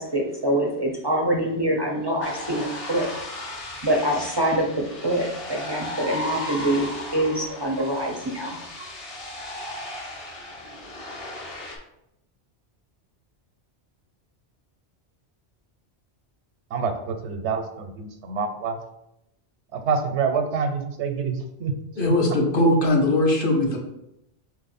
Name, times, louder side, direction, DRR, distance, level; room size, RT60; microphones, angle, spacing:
voice 1, 0.0-3.1 3.8-8.6, right 1 dB, 35° right, 0 dB, 0.4 m, -25 dB
sound 1, 2.2-11.8, left 1 dB, 35° left, 0.7 m, -36 dB
voice 2, 16.7-18.8 19.7-21.7, right 5 dB, 90° right, 6 dB, 1.0 m, -27 dB
voice 3, 22.0-23.8, left 1 dB, 55° left, -1 dB, 1.0 m, -20 dB
4.1 x 3.1 x 4.1 m, 0.84 s
omnidirectional pair, 1.1 m